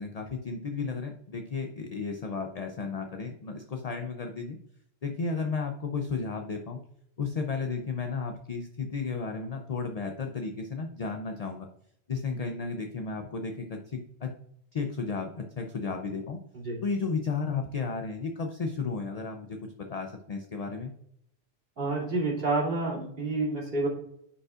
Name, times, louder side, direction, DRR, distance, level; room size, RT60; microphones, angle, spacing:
voice 1, 0.0-4.6 5.0-6.8 7.2-11.7 12.1-14.3 14.7-16.4 16.8-20.9, left 4 dB, 45° left, 4 dB, 0.6 m, -33 dB
voice 2, 21.8-23.9, right 2 dB, 55° right, -5 dB, 2.7 m, -29 dB
9.7 x 5.3 x 2.4 m, 0.73 s
omnidirectional pair, 1.1 m